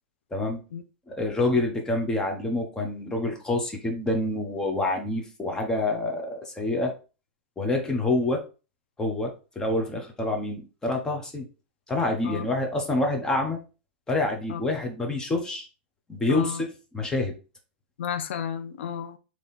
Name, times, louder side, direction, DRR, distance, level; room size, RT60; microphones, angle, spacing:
voice 1, 1.1-6.9 7.6-8.4 9.0-11.5 11.9-13.6 14.1-15.7 16.1-16.7 16.9-17.3, left 2 dB, 10° left, 1.0 m, -27 dB
voice 2, 16.3-16.6 18.0-19.2, left 8 dB, 80° left, 0.5 m, -32 dB
3.6 x 3.0 x 4.2 m
supercardioid pair, 145°, 6 cm